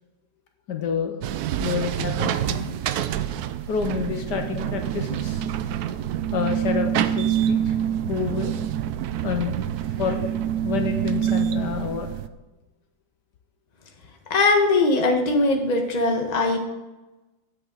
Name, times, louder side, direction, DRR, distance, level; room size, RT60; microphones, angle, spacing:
voice 1, 0.7-1.2 1.6-2.7 3.7-5.4 6.3-7.7 8.1-8.5 9.2-9.6 10.0-10.3 10.6-12.1, left 6 dB, 70° left, 4 dB, 1.5 m, -28 dB
sound 1, 1.2-12.3, right 10 dB, 70° right, 0.9 m, -26 dB
voice 2, 14.3-16.6, left 2 dB, 25° left, 2 dB, 1.2 m, -20 dB
10.5 x 7.9 x 4.0 m, 1.1 s
omnidirectional pair, 2.0 m